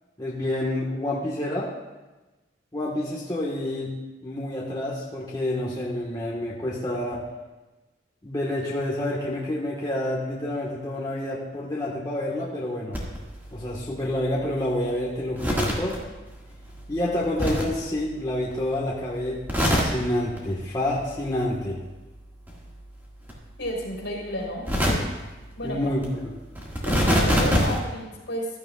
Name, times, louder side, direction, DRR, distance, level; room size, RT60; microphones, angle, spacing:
voice 1, 0.2-1.7 2.7-3.9 4.2-7.2 8.2-13.0 13.5-15.9 16.9-19.4 19.7-21.8 25.6-26.3, left 1 dB, 20° left, -6 dB, 1.5 m, -28 dB
sound 1, 12.9-18.7 19.0-20.4 20.7-22.2 22.4-27.8, equal, 10° right, 1.9 m, -29 dB
voice 2, 23.6-24.7 25.6-25.8 26.8-28.5, left 1 dB, 70° left, -1 dB, 3.7 m, -32 dB
15.0 x 12.5 x 2.4 m, 1.1 s
head